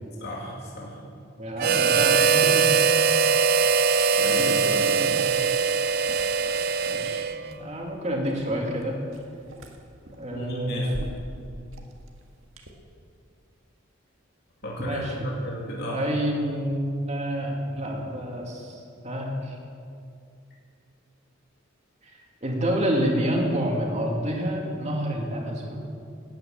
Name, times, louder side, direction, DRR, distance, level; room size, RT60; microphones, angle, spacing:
voice 1, 0.2-1.0 4.1-5.3 10.3-10.9 14.6-16.0, equal, 55° left, -4 dB, 2.6 m, -33 dB
voice 2, 1.4-2.7 3.1-3.2 4.3-4.4 6.4-6.5 6.9-9.0 10.2-11.0 14.8-15.3 15.9-19.6 22.0-22.1 22.4-25.9, equal, 35° right, 0 dB, 2.4 m, -28 dB
Harmonica, 1.6-7.6, right 5 dB, 50° right, 0.5 m, -22 dB
Liquid, 1.6-12.7, right 1 dB, 80° right, 1.7 m, -45 dB
13.0 x 9.2 x 8.7 m, 2.4 s
head